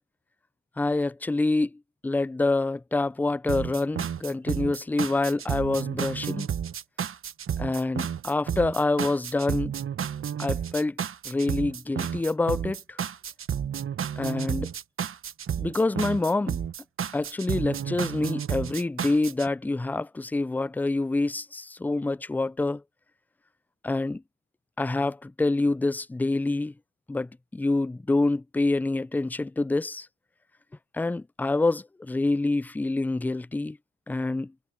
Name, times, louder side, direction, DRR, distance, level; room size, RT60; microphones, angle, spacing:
voice 1, 0.8-6.5 7.6-9.7 10.4-11.0 11.3-13.0 14.2-14.7 15.6-16.6 17.1-22.8 23.8-24.2 24.8-26.7 27.1-30.1 30.9-33.8 34.1-34.5, left 2 dB, 5° left, 0.3 m, -26 dB
sound 1, 3.5-19.5, right 8 dB, 45° right, 1.1 m, -31 dB
cardioid pair, 90°, 30 cm